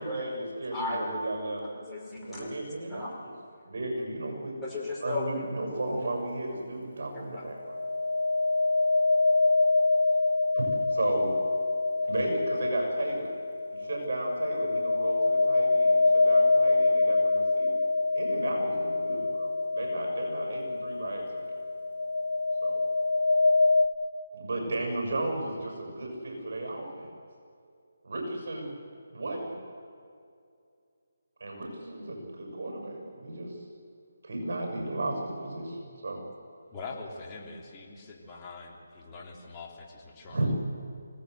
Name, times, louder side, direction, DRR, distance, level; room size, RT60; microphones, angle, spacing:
voice 1, 0.0-1.6 2.3-3.3 3.7-4.5 5.0-7.9 10.5-11.4 12.0-13.3 13.7-17.8 18.1-21.6 22.6-22.8 24.3-27.1 28.0-28.7 29.1-29.6 31.4-33.6 34.2-35.8 36.0-36.2 40.3-40.5, right 2 dB, 55° right, 1 dB, 6.8 m, -34 dB
voice 2, 0.7-1.2 1.6-2.5 2.9-3.2 4.6-5.5 7.1-7.5, left 2 dB, 5° left, -8 dB, 5.0 m, -35 dB
sound 1, 5.8-6.0 7.6-23.9, left 3 dB, 80° left, 2.0 m, -26 dB
voice 3, 36.7-40.5, left 3 dB, 20° left, -2 dB, 3.4 m, -43 dB
25.0 x 17.5 x 8.0 m, 2.4 s
figure-of-eight pair, 155°, 0 cm